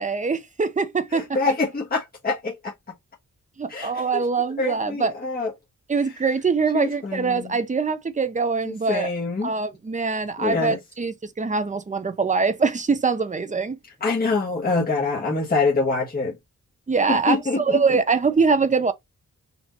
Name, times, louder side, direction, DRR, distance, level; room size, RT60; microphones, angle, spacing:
voice 1, 0.0-1.4 3.6-5.1 5.9-9.1 9.4-13.8 16.9-18.9, right 4 dB, 25° right, 0.7 m, -23 dB
voice 2, 1.1-2.7 3.7-4.2 4.6-5.5 6.7-7.6 8.6-9.5 10.4-10.8 14.0-16.3 17.1-17.8, left 3 dB, 30° left, 1.5 m, -25 dB
4.4 x 2.8 x 4.0 m
wide cardioid pair, 135°, 31 cm